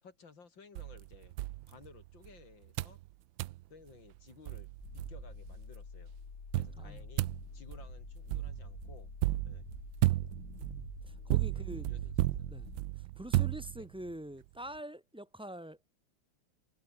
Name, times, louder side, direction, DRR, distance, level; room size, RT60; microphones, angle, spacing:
voice 1, 0.0-1.4 1.7-3.0 3.7-6.1 6.5-7.3 7.5-9.1 9.5-9.7 11.5-12.6 13.8-13.9, left 5 dB, 75° left, 3.9 m, -57 dB
sound 1, 0.7-2.3 2.8-3.0 3.4-3.6 4.1-4.2 4.5-5.6 6.5-14.1, right 17 dB, 80° right, 1.3 m, -34 dB
sound 2, 4.8-12.8, left 5 dB, 60° left, 3.3 m, -48 dB
voice 2, 10.6-11.9 12.5-15.9, right 1 dB, 5° right, 0.9 m, -46 dB
omnidirectional pair, 2.1 m